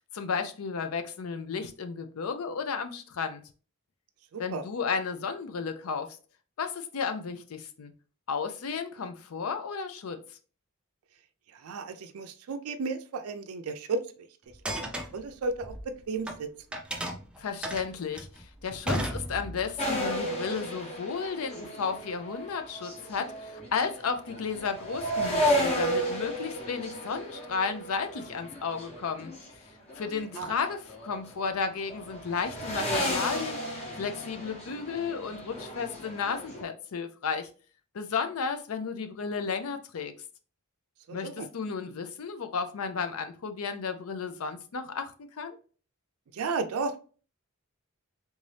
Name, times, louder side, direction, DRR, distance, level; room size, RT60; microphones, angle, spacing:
voice 1, 0.1-3.4 4.4-6.2 6.6-7.9 8.3-10.2 17.4-29.3 29.9-33.6 33.9-37.5 37.9-40.1 41.1-45.6, left 5 dB, 80° left, 0.5 m, -33 dB
voice 2, 4.3-4.6 11.5-14.0 14.7-14.8 15.1-16.5 30.4-30.5 41.1-41.5 46.3-47.0, right 4 dB, 80° right, 0.4 m, -33 dB
sound 1, 14.5-16.4 16.7-19.8, right 1 dB, 5° right, 0.4 m, -34 dB
sound 2, 19.8-29.5 29.9-31.6 31.9-36.6, equal, 30° left, 1.0 m, -33 dB
3.5 x 2.7 x 3.3 m
head